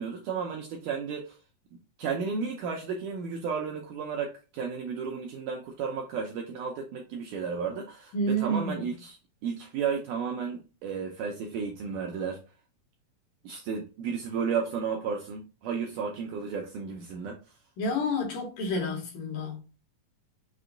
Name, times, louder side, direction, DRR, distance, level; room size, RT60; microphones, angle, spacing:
voice 1, 0.0-1.4 2.0-9.2 9.4-12.4 13.4-17.4, right 6 dB, 80° right, 1.8 m, -33 dB
voice 2, 8.1-8.7 17.8-19.8, equal, 70° left, 2.4 m, -29 dB
5.9 x 2.2 x 3.8 m
omnidirectional pair, 4.3 m